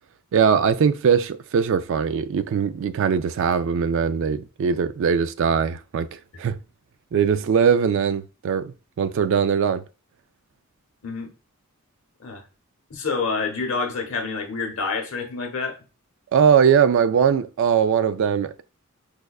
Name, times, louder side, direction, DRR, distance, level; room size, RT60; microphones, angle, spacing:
voice 1, 0.3-6.1 6.4-6.6 7.1-9.8 16.3-18.6, right 7 dB, 60° right, 0.3 m, -20 dB
voice 2, 12.9-15.8, left 4 dB, 65° left, 0.8 m, -27 dB
4.8 x 2.2 x 2.3 m
head